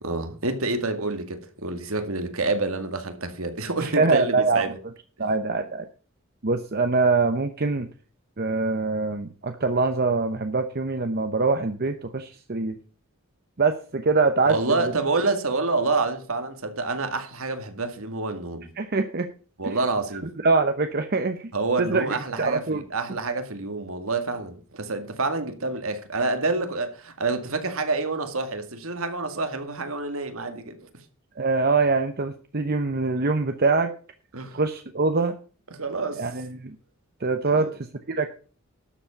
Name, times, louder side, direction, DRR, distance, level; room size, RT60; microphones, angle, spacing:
voice 1, 0.0-4.8 5.2-5.3 14.5-18.7 19.6-20.3 21.5-30.8 34.3-34.6 35.7-36.3 37.5-37.7, right 3 dB, 70° right, 2.0 m, -28 dB
voice 2, 3.8-4.6 5.2-5.9 6.4-7.9 8.4-12.8 13.6-14.9 18.8-19.3 19.6-19.8 20.4-21.5 21.8-22.8 31.4-33.9 34.5-35.3 36.2-36.8 37.2-38.3, right 3 dB, 45° right, 0.9 m, -24 dB
12.5 x 7.4 x 5.8 m
head